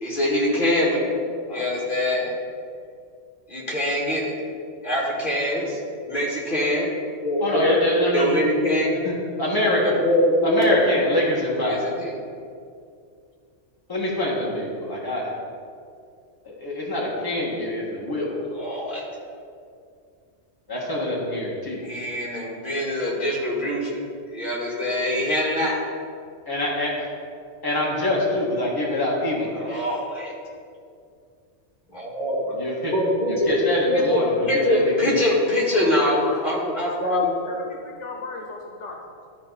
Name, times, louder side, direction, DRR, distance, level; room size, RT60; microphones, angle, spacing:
voice 1, 0.0-2.4 3.5-4.3 4.8-5.8 6.0-6.9 7.2-7.8 8.1-9.0 9.8-10.8 11.6-12.1 18.5-19.0 21.8-24.0 24.3-25.8 29.5-30.3 31.9-32.6 32.9-33.5 33.9-37.3, left 1 dB, 45° left, -5 dB, 2.1 m, -24 dB
voice 2, 7.4-8.4 9.0-9.8 10.4-11.9 13.9-15.3 16.4-18.4 20.7-21.9 26.5-27.1 27.6-29.8 32.5-32.9 33.3-35.1, left 1 dB, 20° left, -5 dB, 1.6 m, -25 dB
voice 3, 35.8-36.4 37.0-37.2 37.5-39.3, left 3 dB, 80° left, 1 dB, 1.2 m, -36 dB
12.5 x 4.7 x 4.0 m, 2.3 s
omnidirectional pair, 1.2 m